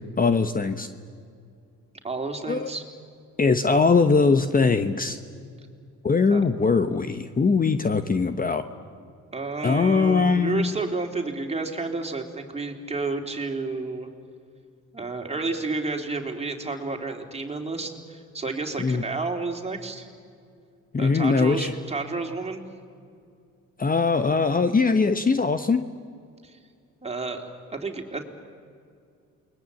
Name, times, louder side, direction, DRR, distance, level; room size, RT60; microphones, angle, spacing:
voice 1, 0.2-0.9 2.5-2.7 3.4-5.2 6.0-8.6 9.6-10.7 18.8-19.0 20.9-21.7 23.8-25.9, left 4 dB, 30° left, 10 dB, 1.1 m, -21 dB
voice 2, 2.0-2.8 6.3-6.4 9.3-14.1 14.9-20.1 20.9-22.6 26.4-26.6 27.0-28.2, right 3 dB, 20° right, 3 dB, 3.5 m, -31 dB
29.0 x 21.5 x 8.5 m, 2.3 s
cardioid pair, 90°, 30 cm